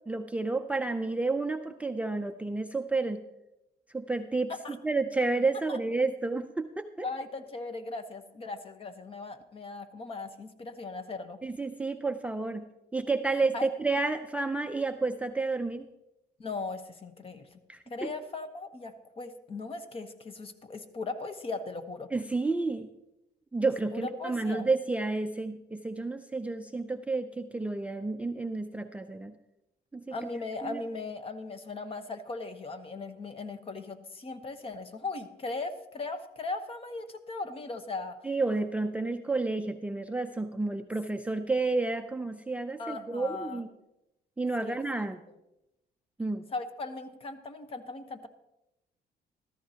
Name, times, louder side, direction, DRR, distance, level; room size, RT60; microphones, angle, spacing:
voice 1, 0.1-3.2 3.9-7.1 11.4-12.7 12.9-15.9 17.7-18.1 22.1-22.9 23.5-29.3 29.9-30.1 30.6-30.8 38.2-43.7 44.4-45.2 46.2-46.4, right 3 dB, 10° right, 6 dB, 0.5 m, -30 dB
voice 2, 7.0-11.4 13.3-13.7 16.4-17.6 17.9-22.1 23.9-24.7 30.1-38.2 42.8-43.6 44.6-44.8 46.5-48.3, left 3 dB, 35° left, 9 dB, 1.1 m, -38 dB
13.5 x 13.5 x 2.8 m, 0.91 s
cardioid pair, 110°, 17 cm